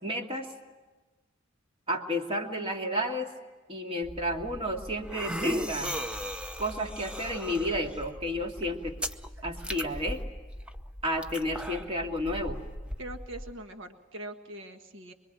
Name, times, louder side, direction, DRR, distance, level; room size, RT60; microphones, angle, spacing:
voice 1, 0.0-0.5 1.9-3.3 3.7-5.9 6.6-8.9 9.4-10.2 11.0-12.6, equal, 30° right, 2 dB, 2.4 m, -31 dB
sound 1, 4.0-13.5, equal, 5° right, 0.8 m, -37 dB
voice 2, 13.0-15.1, right 1 dB, 70° right, 5 dB, 1.5 m, -42 dB
25.0 x 24.5 x 8.9 m, 1.2 s
head